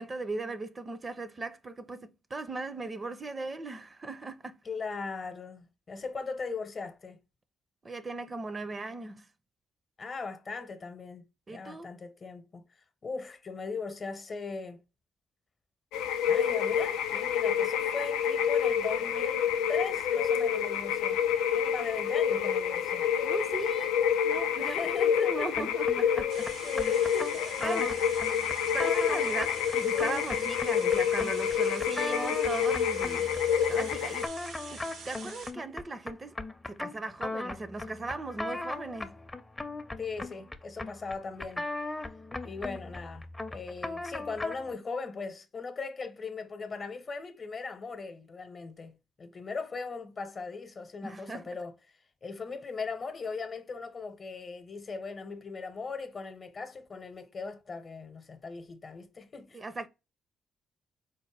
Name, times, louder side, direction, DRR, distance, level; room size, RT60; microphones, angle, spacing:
voice 1, 0.0-4.6 7.8-9.3 11.5-11.9 23.2-24.8 25.2-25.9 26.2-26.3 26.9-27.0 27.6-28.1 28.7-33.3 33.7-34.3 34.7-36.3 36.7-39.2 51.0-51.4 59.5-59.9, right 3 dB, 35° right, 0.5 m, -38 dB
voice 2, 4.6-7.2 10.0-14.8 16.3-21.2 21.5-23.0 24.6-26.3 26.6-27.5 40.0-41.7 42.4-51.7 52.2-59.6, left 4 dB, 45° left, 0.8 m, -39 dB
sound 1, 15.9-34.3, left 8 dB, 80° left, 0.3 m, -28 dB
sound 2, 25.5-44.7, left 2 dB, 20° left, 0.6 m, -38 dB
sound 3, 26.3-35.5, right 5 dB, 75° right, 0.7 m, -46 dB
4.3 x 2.1 x 3.3 m
hypercardioid pair, 50°, 0 cm